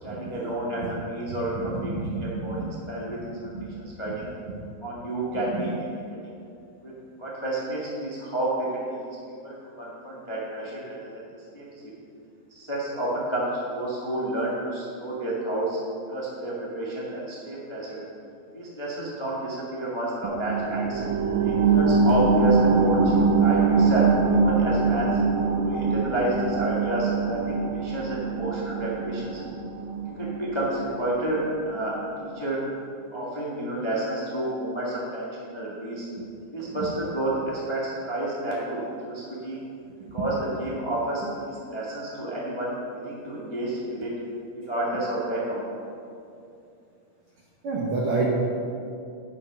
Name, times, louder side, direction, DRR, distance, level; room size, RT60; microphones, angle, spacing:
voice 1, 0.0-3.2 3.8-4.3 4.8-5.7 6.8-6.9 7.2-8.7 9.0-9.2 9.4-10.8 11.1-11.2 11.5-11.9 12.5-15.8 16.1-18.0 18.5-21.0 21.4-23.1 23.4-25.1 25.6-29.4 30.2-32.6 33.1-36.1 36.5-39.6 40.1-44.1 44.5-45.6, right 1 dB, 30° left, -6 dB, 0.5 m, -30 dB
voice 2, 1.6-2.7 3.1-3.8 4.0-4.1 5.5-5.6 36.7-36.8 40.2-40.3 47.6-48.3, right 3 dB, 60° right, -5 dB, 1.5 m, -30 dB
sound 1, 20.2-31.3 31.7-31.8, right 4 dB, 75° right, 1.8 m, -23 dB
9.3 x 7.2 x 6.0 m, 2.5 s
omnidirectional pair, 3.9 m